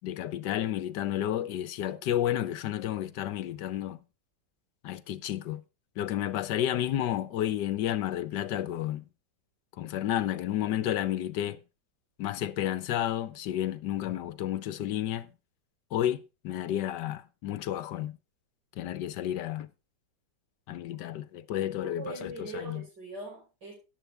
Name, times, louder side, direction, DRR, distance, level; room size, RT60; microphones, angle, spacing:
voice 1, 0.0-4.0 4.8-5.6 6.0-9.0 9.8-11.6 12.2-15.3 15.9-18.2 18.8-19.7 20.7-22.8, left 12 dB, 85° left, 1.4 m, -31 dB
voice 2, 21.5-23.7, right 2 dB, 85° right, 5.8 m, -42 dB
14.0 x 9.8 x 3.3 m
omnidirectional pair, 1.8 m